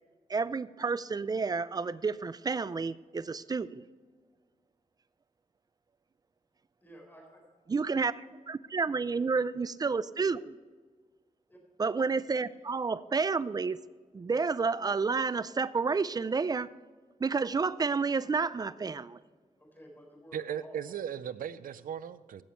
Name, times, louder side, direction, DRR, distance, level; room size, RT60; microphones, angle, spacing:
voice 1, 0.3-3.8 7.7-10.5 11.8-13.8 14.1-16.7 17.2-19.2, right 4 dB, 30° right, 17 dB, 0.4 m, -30 dB
voice 2, 6.8-7.5 11.5-11.6 19.6-21.0, equal, 15° left, -1 dB, 4.1 m, -52 dB
voice 3, 20.3-22.4, right 9 dB, 80° right, 16 dB, 0.5 m, -37 dB
16.0 x 7.1 x 4.4 m, 1.5 s
wide cardioid pair, 110°, 14 cm